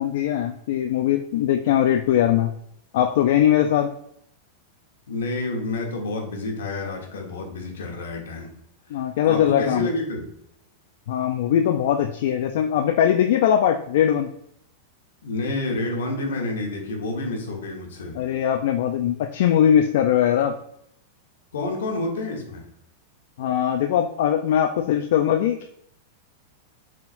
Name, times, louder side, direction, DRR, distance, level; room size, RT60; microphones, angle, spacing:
voice 1, 0.0-2.5 2.9-3.9 8.9-9.9 11.1-14.3 18.2-20.5 23.4-25.7, left 10 dB, 70° left, 5 dB, 0.4 m, -21 dB
voice 2, 5.1-8.5 8.9-10.3 15.2-18.2 21.5-22.6, left 2 dB, 85° left, 1 dB, 1.2 m, -29 dB
4.5 x 3.6 x 2.5 m, 0.74 s
hypercardioid pair, 130°, 0 cm